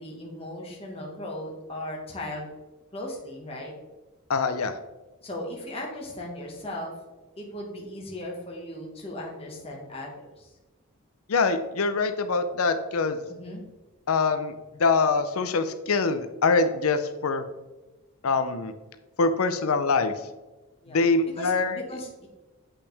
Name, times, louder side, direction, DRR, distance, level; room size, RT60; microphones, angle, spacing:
voice 1, 0.0-2.5 2.9-3.7 5.2-6.9 7.4-10.5 13.3-13.6 20.8-21.0 21.4-22.3, left 1 dB, 25° left, -2 dB, 1.5 m, -37 dB
voice 2, 4.3-4.7 11.3-13.2 14.1-14.5 14.8-17.4 18.2-18.7 19.2-20.1 20.9-21.8, left 4 dB, 70° left, 9 dB, 0.6 m, -24 dB
8.3 x 5.8 x 3.4 m, 1.1 s
head